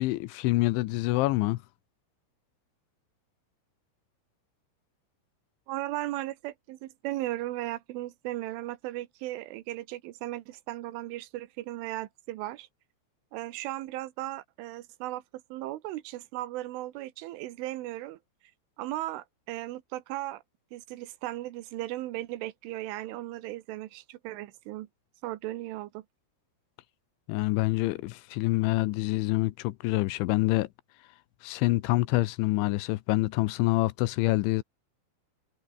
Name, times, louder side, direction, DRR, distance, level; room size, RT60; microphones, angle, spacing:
voice 1, 0.0-1.6 27.3-30.7 31.4-34.6, left 19 dB, 85° left, 3.1 m, -26 dB
voice 2, 5.7-12.7 13.3-18.2 18.8-20.4 20.7-24.9 25.2-26.1, right 16 dB, 85° right, 3.7 m, -36 dB
omnidirectional pair, 5.5 m